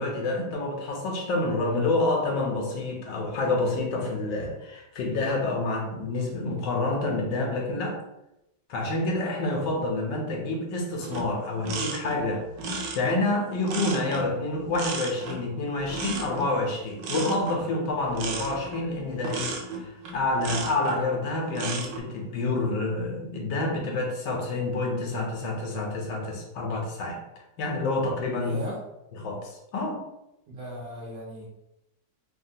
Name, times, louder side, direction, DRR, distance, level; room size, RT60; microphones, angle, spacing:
voice 1, 0.0-8.0 8.7-27.2 27.6-28.6 29.2-30.0, left 2 dB, 75° left, 1 dB, 1.3 m, -28 dB
sound 1, 11.0-21.0 21.4-22.0, right 3 dB, 85° right, 1.3 m, -35 dB
voice 2, 28.4-28.8 30.5-31.5, right 1 dB, 65° right, -3 dB, 0.9 m, -37 dB
3.3 x 2.1 x 2.6 m, 0.88 s
omnidirectional pair, 2.0 m